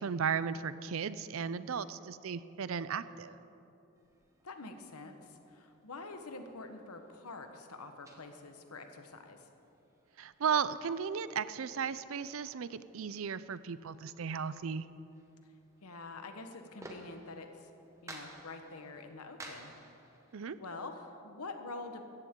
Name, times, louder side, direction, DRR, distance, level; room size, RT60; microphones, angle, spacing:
voice 1, 0.0-3.3 10.2-14.9 20.3-20.6, right 6 dB, 65° right, 15 dB, 0.4 m, -35 dB
sound 1, 4.0-20.5, right 1 dB, 15° right, 1.1 m, -57 dB
voice 2, 4.4-9.5 15.8-17.7 18.0-19.7 20.6-22.0, left 3 dB, 85° left, 6 dB, 1.2 m, -46 dB
16.0 x 14.5 x 3.8 m, 2.9 s
head